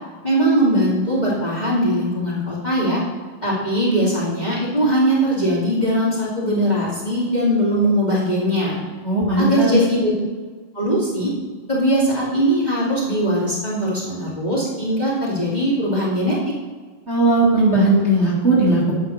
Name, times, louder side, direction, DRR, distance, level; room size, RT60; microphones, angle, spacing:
voice 1, 0.2-3.0 3.4-8.8 9.4-10.1 10.7-11.3 11.7-16.4, equal, 20° left, -7 dB, 2.4 m, -20 dB
voice 2, 9.0-9.8 17.1-18.9, right 2 dB, 30° right, -6 dB, 2.1 m, -17 dB
8.9 x 5.7 x 6.3 m, 1.4 s
omnidirectional pair, 2.4 m